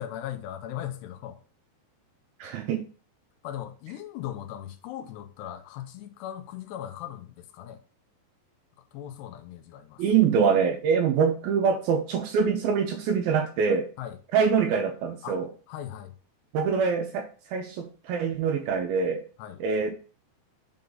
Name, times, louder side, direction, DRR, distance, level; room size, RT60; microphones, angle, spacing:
voice 1, 0.0-1.4 3.4-7.8 8.9-10.0 14.0-14.2 15.2-15.4 15.7-16.1 19.4-19.6, left 11 dB, 80° left, 2.8 m, -38 dB
voice 2, 2.4-2.8 10.0-13.9 14.3-15.5 16.5-19.2 19.6-19.9, right 6 dB, 80° right, 2.2 m, -24 dB
6.8 x 3.6 x 3.9 m
omnidirectional pair, 4.9 m